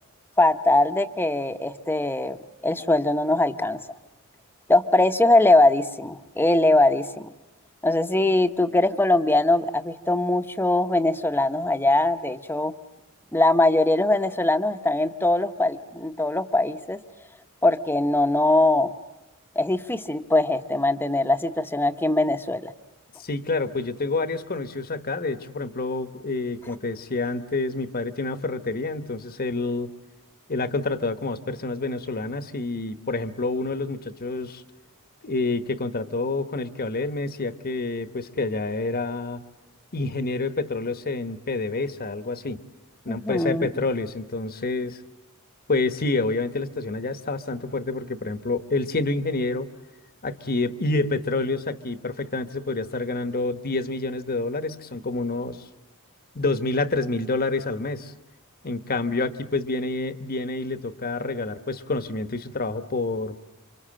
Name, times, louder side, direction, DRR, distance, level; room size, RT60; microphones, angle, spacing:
voice 1, 0.4-2.4 2.6-3.8 4.7-7.3 7.8-12.7 13.3-17.0 17.6-18.9 19.5-22.7 43.1-43.7, left 2 dB, 10° left, 9 dB, 1.0 m, -21 dB
voice 2, 23.2-29.9 30.5-34.6 35.2-39.4 39.9-42.6 43.0-45.0 45.7-49.7 50.2-55.6 56.3-58.1 58.6-63.4, left 3 dB, 45° left, 11 dB, 1.2 m, -28 dB
28.5 x 25.5 x 7.6 m, 0.99 s
head